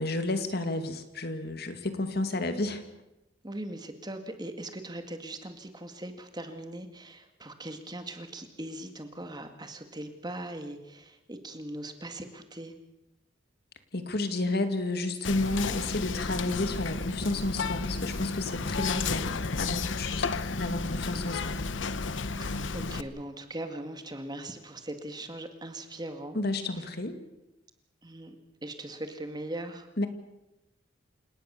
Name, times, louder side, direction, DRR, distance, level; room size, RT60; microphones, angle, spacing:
voice 1, 0.0-2.8 13.9-21.6 26.3-27.2 30.0-30.1, left 2 dB, 55° left, 8 dB, 2.3 m, -31 dB
voice 2, 3.4-12.7 22.3-26.4 26.8-26.9 28.0-28.4 28.6-29.9, right 1 dB, 20° right, 7 dB, 2.0 m, -40 dB
Whispering, 15.3-23.0, left 4 dB, 75° left, 1.0 m, -32 dB
28.5 x 18.5 x 6.9 m, 0.92 s
head